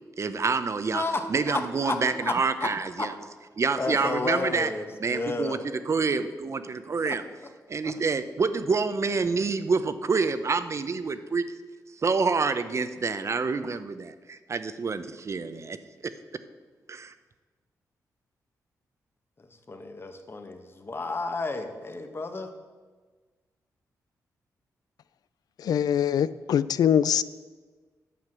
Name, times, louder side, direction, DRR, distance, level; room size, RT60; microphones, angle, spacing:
voice 1, 0.2-1.0 1.3-3.1 3.6-4.7 5.0-7.2 7.7-11.4 12.0-15.8 16.0-16.1 16.9-17.1, right 4 dB, 45° right, 12 dB, 0.7 m, -27 dB
voice 2, 0.9-2.7 3.0-3.1 3.8-5.6 7.0-7.2 7.8-7.9 19.7-22.5, left 3 dB, 35° left, 6 dB, 1.3 m, -32 dB
voice 3, 25.6-27.2, left 9 dB, 75° left, 17 dB, 0.4 m, -23 dB
9.2 x 5.8 x 7.7 m, 1.4 s
cardioid pair, 70°, 7 cm